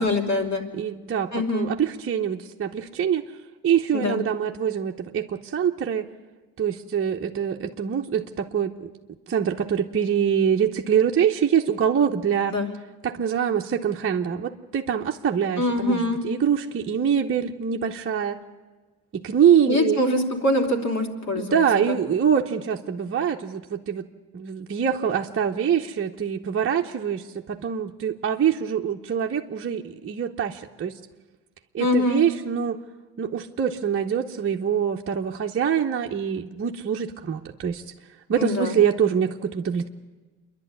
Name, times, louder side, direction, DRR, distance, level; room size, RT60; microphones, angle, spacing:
voice 1, 0.0-0.6 1.3-1.7 3.9-4.2 12.5-12.7 15.6-16.2 19.7-22.0 31.8-32.2 38.4-38.7, left 1 dB, 40° left, 2 dB, 3.2 m, -24 dB
voice 2, 0.7-3.2 3.6-6.0 6.6-8.7 9.3-12.5 13.0-18.4 19.1-20.0 21.3-24.0 24.3-30.9 31.7-32.8 33.2-37.8 38.3-39.9, right 8 dB, 30° right, 0 dB, 0.9 m, -24 dB
26.5 x 11.5 x 9.6 m, 1.3 s
cardioid pair, 105°, 41 cm